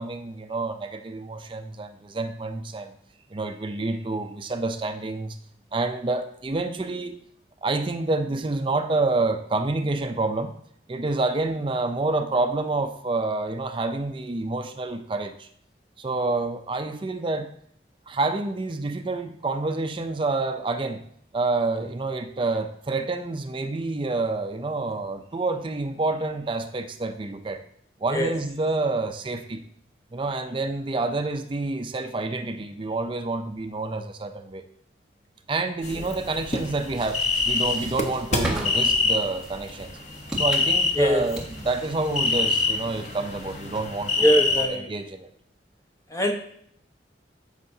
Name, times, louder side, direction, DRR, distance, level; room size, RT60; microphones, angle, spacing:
voice 1, 0.0-2.9 3.3-5.4 5.7-7.2 7.6-10.5 10.9-15.5 16.0-17.5 18.1-21.0 21.3-27.6 28.0-29.6 30.1-34.6 35.5-40.0 40.4-44.4 44.7-45.3, right 3 dB, 30° right, 7 dB, 0.4 m, -28 dB
sound 1, 35.8-44.7, left 3 dB, 40° left, 0.9 m, -26 dB
sound 2, 36.7-44.0, right 1 dB, 5° right, 1.7 m, -39 dB
voice 2, 41.0-41.3 44.2-44.9 46.1-46.3, equal, 15° left, 2 dB, 1.0 m, -22 dB
13.0 x 5.4 x 2.7 m, 0.67 s
head